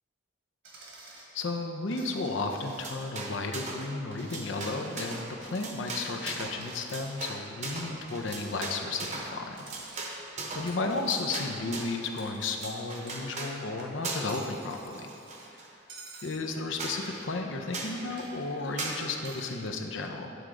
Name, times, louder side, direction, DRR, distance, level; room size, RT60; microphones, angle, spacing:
Coin (dropping), 0.6-1.3 1.9-3.2 3.6-5.3 5.8-7.9 8.3-9.3 9.6-10.3 10.7-13.5 13.8-15.5 15.9-16.4 17.0-19.6, right 3 dB, 70° right, 1.4 m, -52 dB
voice 1, 1.3-9.6 10.5-15.1 16.2-20.3, left 3 dB, 75° left, 3 dB, 0.6 m, -33 dB
sound 1, 2.6-3.9 4.1-12.0 12.4-13.5 14.0-14.4 14.7-15.7 16.1-16.2 16.5-16.6 16.8-17.0 17.7-18.0 18.8-19.0, right 3 dB, 35° right, 0.8 m, -38 dB
9.5 x 3.8 x 4.7 m, 2.7 s
head